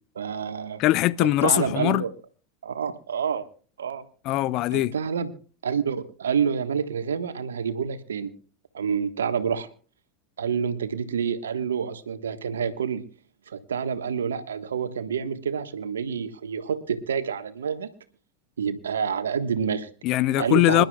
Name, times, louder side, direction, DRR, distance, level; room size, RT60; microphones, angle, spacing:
voice 1, 0.1-0.8 1.2-2.1 2.6-3.5 3.8-4.0 4.7-5.3 5.6-8.3 8.7-9.7 10.4-13.0 13.5-17.9 18.6-19.9 20.4-20.8, right 7 dB, 80° right, 1.3 m, -28 dB
voice 2, 0.8-2.0 4.2-4.9 20.0-20.8, left 16 dB, 50° left, 0.6 m, -21 dB
26.0 x 12.0 x 2.3 m
figure-of-eight pair, 85°, 0 cm